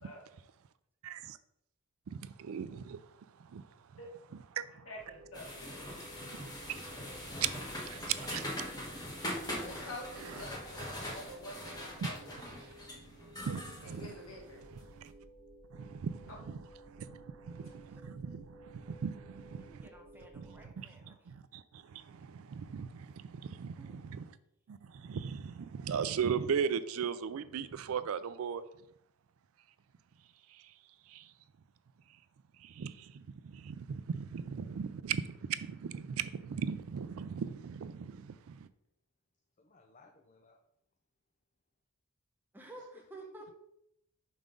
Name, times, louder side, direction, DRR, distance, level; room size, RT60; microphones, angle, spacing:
voice 1, 1.0-1.4 2.1-4.0 4.5-4.9 6.3-7.1 7.9-8.4 10.2-10.4 12.0-12.1 13.4-14.1 14.9-15.1 15.7-19.9 20.3-24.3 24.7-28.6 30.5-30.7 31.1-31.3 32.6-38.7, right 7 dB, 70° right, 0.4 m, -39 dB
voice 2, 4.8-5.9 9.6-11.9 12.2-12.4 13.8-14.6 16.3-16.4, left 1 dB, 70° left, 1.7 m, -47 dB
sound 1, 4.9-20.6, right 1 dB, 35° right, 1.8 m, -56 dB
sound 2, 5.3-14.9, left 1 dB, 20° left, 1.2 m, -42 dB
voice 3, 6.9-7.4 7.9-8.5 39.6-40.6 42.8-42.9, left 3 dB, 35° left, 0.5 m, -59 dB
voice 4, 17.6-18.0 19.6-21.2 23.8-24.2 42.5-43.6, right 2 dB, 10° right, 0.8 m, -53 dB
5.6 x 3.6 x 5.2 m
head